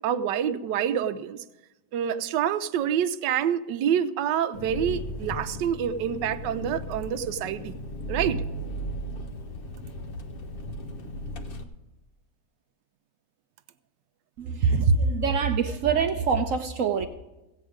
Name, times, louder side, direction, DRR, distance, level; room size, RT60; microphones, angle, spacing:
voice 1, 0.0-1.4 1.9-7.7 8.1-8.4, right 9 dB, 85° right, 10 dB, 1.3 m, -27 dB
Engine, 4.5-11.6, equal, 45° left, 0.8 m, -36 dB
voice 2, 14.4-17.1, right 5 dB, 65° right, 8 dB, 0.8 m, -24 dB
15.5 x 8.6 x 5.0 m, 1.0 s
omnidirectional pair, 1.9 m